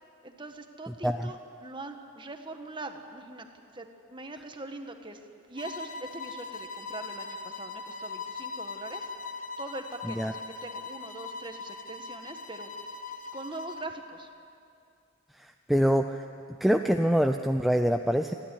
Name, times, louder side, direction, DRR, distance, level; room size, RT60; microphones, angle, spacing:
voice 1, 0.2-5.2 5.5-9.1 9.6-12.7 13.3-14.3, right 2 dB, 25° right, 5 dB, 1.5 m, -42 dB
sound 1, 5.6-13.9, left 4 dB, 40° left, 1.2 m, -40 dB
voice 2, 15.4-16.2 16.6-18.3, equal, ahead, 5 dB, 0.5 m, -25 dB
29.0 x 12.0 x 9.9 m, 2.5 s
head